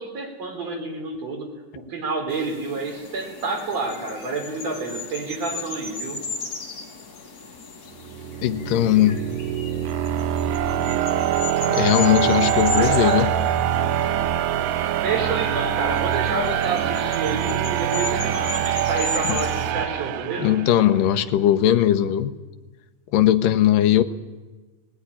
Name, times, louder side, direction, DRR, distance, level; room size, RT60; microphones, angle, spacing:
voice 1, 0.0-1.5 1.7-6.2 12.7-13.3 15.0-20.5, right 3 dB, 45° right, 1 dB, 4.8 m, -29 dB
sound 1, 2.3-19.7, left 4 dB, 55° left, 4.3 m, -36 dB
sound 2, 8.0-20.9, right 10 dB, 80° right, 2.6 m, -24 dB
voice 2, 8.4-9.3 11.7-13.3 19.3-19.4 20.4-22.3 23.1-24.0, left 12 dB, 75° left, 7 dB, 2.4 m, -19 dB
19.0 x 18.0 x 9.9 m, 1.2 s
omnidirectional pair, 4.1 m